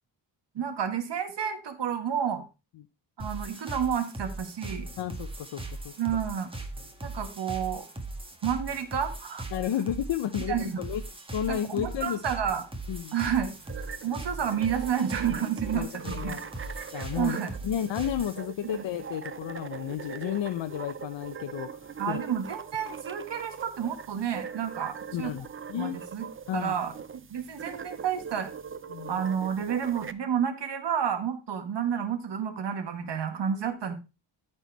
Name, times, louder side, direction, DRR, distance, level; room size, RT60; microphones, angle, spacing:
voice 1, 0.5-2.5 3.2-4.9 6.0-6.5 7.0-7.9 8.4-9.5 10.5-10.8 11.5-12.6 13.1-13.5 14.0-16.4 17.0-17.5 18.7-18.8 22.0-25.3 25.7-26.2 26.5-28.5 29.1-33.9, right 8 dB, 70° right, 7 dB, 1.6 m, -30 dB
sound 1, 3.2-18.4, right 2 dB, 10° right, 1.6 m, -39 dB
voice 2, 5.0-5.9 9.5-11.0 11.3-12.2 12.9-13.1 15.7-17.4 17.6-22.2 25.1-26.0 26.5-26.7 28.9-29.1, left 10 dB, 80° left, 7 dB, 0.8 m, -32 dB
sound 2, 13.5-30.1, right 6 dB, 30° right, 0.6 m, -42 dB
13.5 x 4.5 x 4.6 m, 0.29 s
wide cardioid pair, 135°, 44 cm